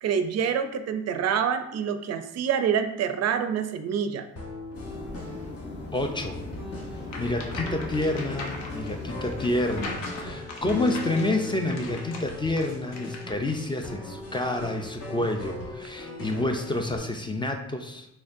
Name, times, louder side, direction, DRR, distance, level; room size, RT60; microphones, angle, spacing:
voice 1, 0.0-4.3, right 7 dB, 60° right, 8 dB, 0.4 m, -26 dB
sound 1, 4.4-17.0, left 2 dB, 55° left, 1.0 m, -39 dB
sound 2, 4.7-9.9, left 2 dB, 35° left, 0.7 m, -38 dB
voice 2, 5.9-6.4 7.2-18.1, left 1 dB, 15° left, 4 dB, 0.4 m, -29 dB
sound 3, 7.0-13.5, left 2 dB, 80° left, 0.8 m, -40 dB
4.0 x 3.0 x 2.6 m, 0.81 s
cardioid pair, 90°, 30 cm